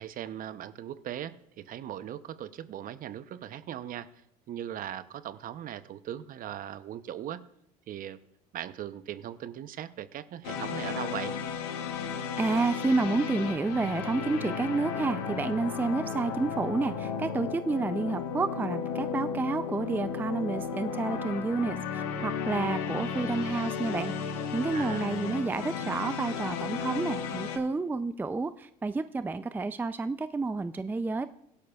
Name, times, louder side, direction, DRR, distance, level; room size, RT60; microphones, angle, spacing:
voice 1, 0.0-4.1 4.5-7.4 7.9-8.2 8.5-11.3 24.7-25.1, right 11 dB, 50° right, 14 dB, 0.7 m, -39 dB
sound 1, 10.4-27.6, left 6 dB, 80° left, 1.3 m, -34 dB
voice 2, 12.4-31.3, right 3 dB, 10° right, 13 dB, 0.4 m, -30 dB
16.5 x 11.5 x 2.4 m, 0.76 s
supercardioid pair, 80°, 19 cm